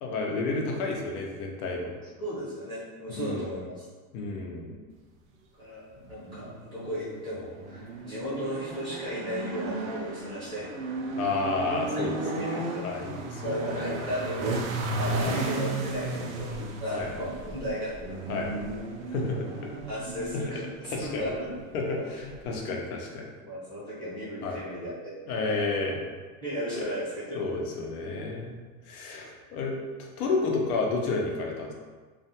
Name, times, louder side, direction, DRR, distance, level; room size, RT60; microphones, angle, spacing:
voice 1, 0.0-1.9 3.1-3.5 4.1-4.8 11.2-12.2 12.8-14.1 15.1-15.5 16.9-17.2 18.3-18.5 19.1-19.7 20.8-21.3 21.7-23.3 24.4-24.6 25.3-26.0 26.7-26.9 27.3-28.5 28.8-29.7 30.0-31.7, left 3 dB, 85° left, 0 dB, 0.7 m, -31 dB
voice 2, 2.2-3.8 5.6-5.8 6.1-10.7 11.9-12.9 13.4-14.7 15.0-16.5 16.8-17.9 19.9-21.5 21.8-22.1 23.4-25.6 26.4-27.4 29.5-29.6, equal, 10° left, -12 dB, 0.5 m, -35 dB
sound 1, 6.0-22.6, right 2 dB, 70° right, 0.5 m, -35 dB
2.4 x 2.2 x 2.7 m, 1.4 s
supercardioid pair, 150°, 43 cm